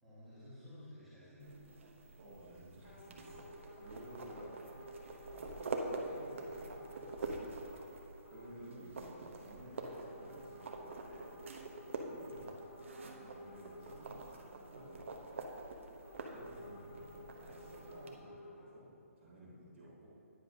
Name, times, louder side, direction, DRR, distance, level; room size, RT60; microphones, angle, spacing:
voice 1, 0.0-1.8 12.2-12.6, left 1 dB, ahead, -15 dB, 1.5 m, -55 dB
sound 1, 1.4-18.1, right 3 dB, 55° right, 0.8 m, -46 dB
voice 2, 2.2-3.5 3.7-4.8 5.3-5.6 5.9-7.4 8.3-11.3 11.9-12.4 13.1-15.4 16.2-18.9 19.1-20.1, right 1 dB, 30° right, -13 dB, 1.6 m, -55 dB
sound 2, 2.8-7.9 8.2-8.6 9.8-15.1 16.0-18.7, left 1 dB, 55° left, 1.3 m, -54 dB
10.0 x 9.7 x 2.7 m, 2.7 s
hypercardioid pair, 175°, 8 cm